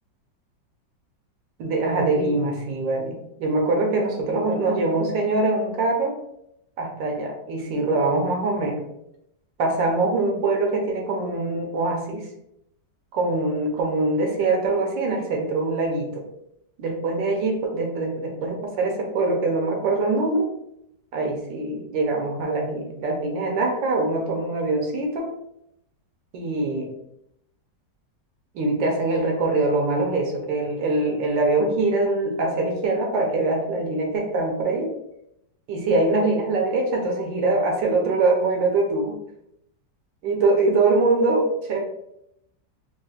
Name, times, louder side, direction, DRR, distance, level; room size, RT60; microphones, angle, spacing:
voice 1, 1.6-6.2 6.8-8.8 9.6-12.3 13.1-16.2 16.8-20.5 21.1-25.2 26.3-26.9 28.5-34.9 35.7-39.2 40.2-41.8, right 2 dB, 85° right, 1 dB, 1.5 m, -23 dB
4.2 x 2.4 x 2.4 m, 0.78 s
omnidirectional pair, 1.9 m